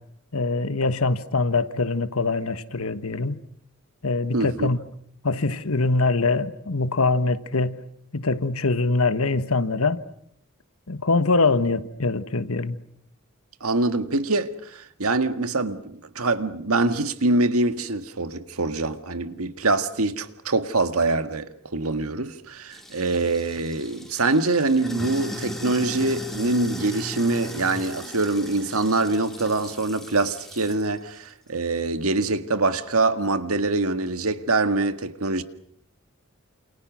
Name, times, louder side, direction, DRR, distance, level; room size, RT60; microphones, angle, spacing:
voice 1, 0.3-3.4 4.0-4.8 5.2-7.8 8.1-10.0 10.9-12.8, left 3 dB, 80° left, 1.4 m, -23 dB
voice 2, 4.3-4.7 13.6-35.4, right 2 dB, 85° right, 1.8 m, -24 dB
Sink (filling or washing), 22.7-30.9, equal, ahead, 3.4 m, -37 dB
28.5 x 28.5 x 6.2 m
head